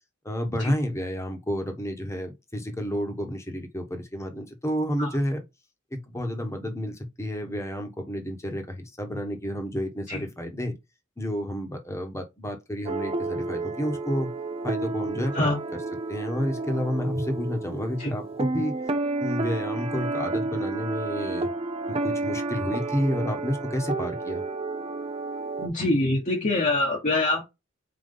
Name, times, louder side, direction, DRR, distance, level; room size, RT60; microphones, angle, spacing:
voice 1, 0.2-5.4 5.9-10.7 11.2-14.3 14.6-15.5 16.1-18.7 19.2-21.5 21.9-24.4, equal, 15° left, 1.3 m, -30 dB
sound 1, 12.9-25.7, right 3 dB, 30° right, 0.7 m, -31 dB
voice 2, 25.6-27.4, left 2 dB, 40° left, 1.3 m, -24 dB
4.4 x 3.9 x 5.6 m
head